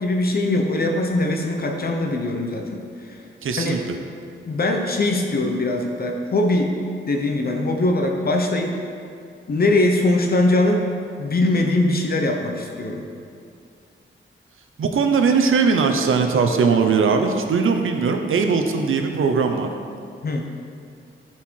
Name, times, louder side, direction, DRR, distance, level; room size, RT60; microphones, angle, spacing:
voice 1, 0.0-3.2 3.5-3.8 4.4-6.8 7.0-8.8 9.5-13.1 20.2-20.5, left 2 dB, 45° left, 2 dB, 0.8 m, -21 dB
voice 2, 3.4-3.8 14.8-19.7, right 5 dB, 80° right, 5 dB, 0.8 m, -19 dB
11.0 x 4.5 x 4.5 m, 2.4 s
wide cardioid pair, 125°, 21 cm